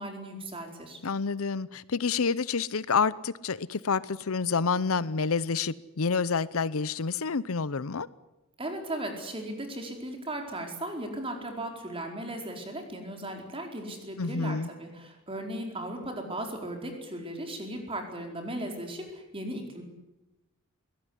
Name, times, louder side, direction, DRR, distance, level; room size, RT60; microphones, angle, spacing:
voice 1, 0.0-1.0 8.6-19.8, right 1 dB, 25° right, 3 dB, 4.5 m, -37 dB
voice 2, 1.0-8.1 14.2-14.7, left 5 dB, 70° left, 18 dB, 0.7 m, -28 dB
23.0 x 17.5 x 9.9 m, 1.0 s
head